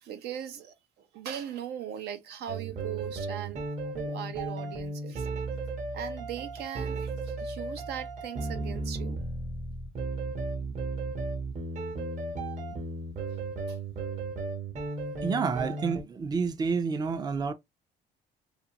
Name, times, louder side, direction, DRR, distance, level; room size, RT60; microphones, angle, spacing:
voice 1, 0.0-5.3 5.9-9.2 10.6-10.8 12.7-12.8 13.7-13.8, right 10 dB, 75° right, 0.8 m, -39 dB
sound 1, 2.5-16.0, right 3 dB, 45° right, 1.1 m, -35 dB
voice 2, 15.2-17.5, right 5 dB, 25° right, 0.4 m, -29 dB
2.5 x 2.5 x 2.8 m
cardioid pair, 110°, 17 cm